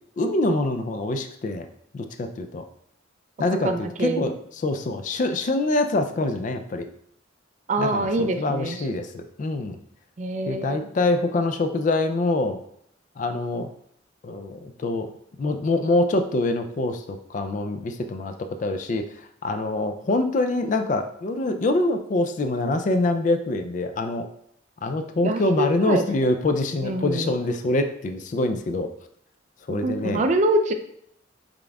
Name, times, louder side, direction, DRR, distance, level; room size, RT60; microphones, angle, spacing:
voice 1, 0.2-1.7 1.9-2.6 3.4-6.9 7.8-9.8 10.5-12.6 13.2-13.7 14.2-15.1 15.4-18.3 18.6-19.0 19.4-24.3 24.8-28.9 29.7-30.2, left 2 dB, 40° left, 7 dB, 0.3 m, -25 dB
voice 2, 3.6-4.3 7.7-8.9 10.2-10.9 25.2-26.0 26.8-27.4 29.7-30.7, right 2 dB, 40° right, 7 dB, 0.3 m, -25 dB
5.1 x 3.7 x 2.3 m, 0.69 s
head